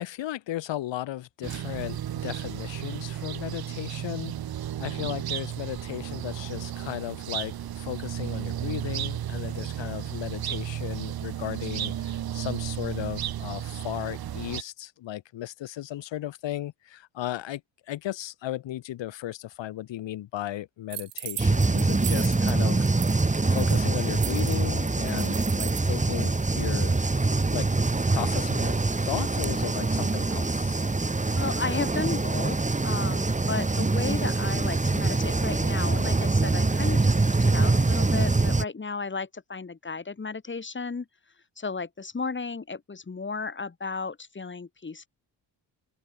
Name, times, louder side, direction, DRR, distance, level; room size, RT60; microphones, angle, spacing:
voice 1, 0.0-4.4 4.8-17.6 17.9-22.9 23.5-27.0 27.5-27.7 28.1-28.8 29.1-30.8, left 13 dB, 85° left, 3.1 m, -35 dB
sound 1, 1.4-14.6, right 11 dB, 55° right, 1.0 m, -33 dB
sound 2, 20.9-22.5 22.9-23.2 23.5-25.9, right 12 dB, 75° right, 2.0 m, -37 dB
sound 3, 21.4-38.6, right 3 dB, 15° right, 1.6 m, -24 dB
voice 2, 31.3-32.6 32.8-41.0 41.6-45.1, left 4 dB, 25° left, 1.6 m, -34 dB
open air
cardioid pair, 70°, 43 cm